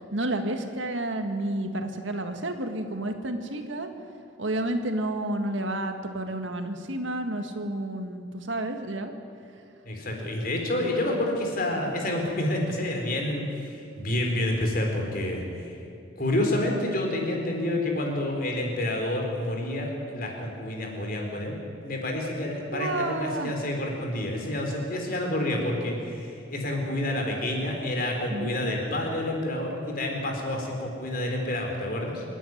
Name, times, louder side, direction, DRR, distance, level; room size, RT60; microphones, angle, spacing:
voice 1, 0.0-3.9 4.4-9.1 10.8-10.9 22.7-23.5 28.3-28.5, right 1 dB, 80° right, 6 dB, 1.8 m, -30 dB
voice 2, 9.8-15.7 16.2-21.6 21.8-32.2, left 1 dB, 50° left, 1 dB, 3.9 m, -29 dB
27.0 x 10.0 x 9.5 m, 2.5 s
head